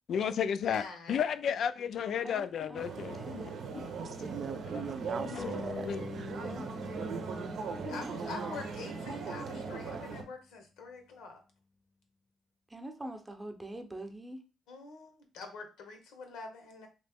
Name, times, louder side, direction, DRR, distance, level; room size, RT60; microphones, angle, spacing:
voice 1, 0.1-0.8 1.1-3.5 4.7-5.5 5.9-6.0, left 8 dB, 65° left, 0.3 m, -33 dB
voice 2, 0.6-1.2 4.1-4.4 7.9-11.4 14.7-16.9, left 4 dB, 85° left, 0.9 m, -45 dB
voice 3, 2.2-3.5 6.3-6.7 7.9-8.7 12.7-14.4, right 1 dB, 15° right, 0.7 m, -44 dB
sound 1, 2.7-10.2, right 4 dB, 75° right, 0.7 m, -39 dB
voice 4, 3.7-5.9 6.2-6.3, right 6 dB, 50° right, 0.4 m, -41 dB
sound 2, 5.4-8.6, left 4 dB, 20° left, 0.7 m, -44 dB
3.1 x 2.8 x 3.5 m
cardioid pair, 90°, 0 cm